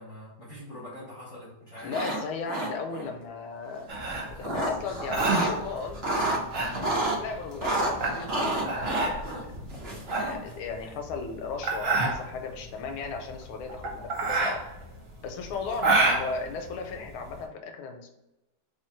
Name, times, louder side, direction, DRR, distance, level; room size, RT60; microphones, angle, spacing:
voice 1, 0.0-1.9 6.7-6.9, left 1 dB, 50° left, -5 dB, 0.9 m, -43 dB
voice 2, 1.8-3.9 4.4-6.0 7.2-9.5 10.2-14.6 15.2-18.1, left 4 dB, 85° left, 5 dB, 1.5 m, -36 dB
sound 1, 1.8-2.2 2.5-3.1 4.0-5.5 5.9-7.2 7.6-10.5, right 2 dB, 90° right, 0.5 m, -30 dB
sound 2, 3.9-17.4, right 3 dB, 50° right, 1.1 m, -29 dB
3.6 x 3.1 x 4.4 m, 0.96 s
omnidirectional pair, 2.3 m